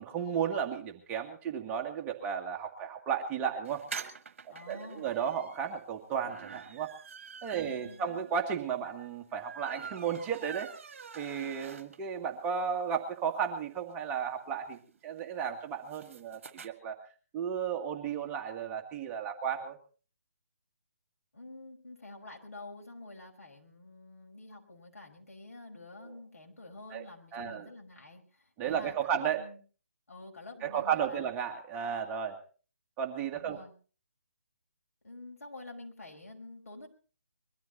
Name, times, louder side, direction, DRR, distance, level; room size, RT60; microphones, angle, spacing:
voice 1, 0.0-3.8 4.5-6.9 7.4-10.7 11.2-14.8 15.0-17.0 17.3-19.8 26.0-26.1 26.9-27.0 27.3-27.7 28.6-29.4 30.6-32.4 33.0-33.6, right 7 dB, 15° right, 3 dB, 1.9 m, -34 dB
sound 1, 3.6-12.2 12.6-12.7 12.9-13.0 13.3-16.7, right 6 dB, 55° right, 1.6 m, -47 dB
voice 2, 4.5-5.1 7.6-8.3 21.3-29.6 30.1-31.3 33.3-33.7 35.0-36.9, left 2 dB, 70° left, 2 dB, 5.5 m, -48 dB
22.5 x 13.5 x 4.1 m, 0.39 s
figure-of-eight pair, 140°, 8 cm